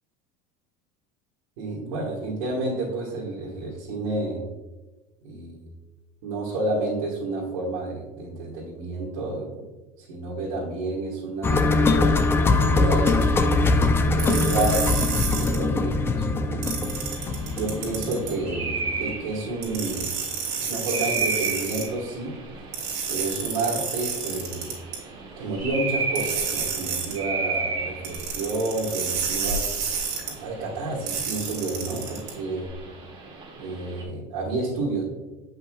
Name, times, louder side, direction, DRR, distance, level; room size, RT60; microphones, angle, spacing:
voice 1, 1.6-4.4 5.2-5.6 6.2-9.6 10.0-11.7 12.6-13.4 14.2-16.9 17.5-20.1 20.6-22.4 23.1-24.7 25.4-29.6 30.3-32.7 33.5-35.0, right 2 dB, 90° right, -6 dB, 1.6 m, -30 dB
sound 1, 11.4-19.4 19.7-19.8, left 3 dB, 15° left, 0.4 m, -22 dB
sound 2, 14.2-15.6 16.6-18.3 19.6-21.8 22.7-25.0 26.1-27.2 28.0-30.3 31.1-32.3, right 6 dB, 55° right, 2.0 m, -30 dB
sound 3, 16.8-34.0, right 4 dB, 30° right, 1.3 m, -35 dB
8.3 x 5.5 x 2.3 m, 1.2 s
cardioid pair, 140°, 18 cm